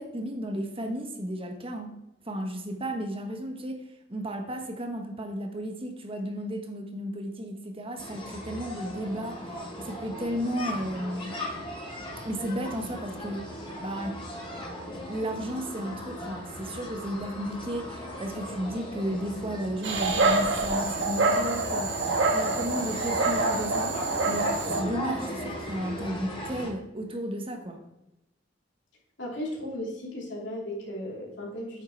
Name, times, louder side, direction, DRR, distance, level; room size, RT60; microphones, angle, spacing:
voice 1, 0.0-1.9 2.2-3.8 4.1-11.4 12.2-13.5 13.8-14.2 14.7-22.0 22.3-23.9 24.3-27.8, equal, 30° right, 5 dB, 1.2 m, -34 dB
sound 1, 8.0-26.7, equal, 30° left, 2.7 m, -38 dB
Dog, 19.8-24.8, right 3 dB, 75° right, 1.6 m, -26 dB
voice 2, 29.2-31.8, left 1 dB, 75° left, -2 dB, 3.0 m, -35 dB
9.3 x 6.5 x 4.6 m, 0.91 s
head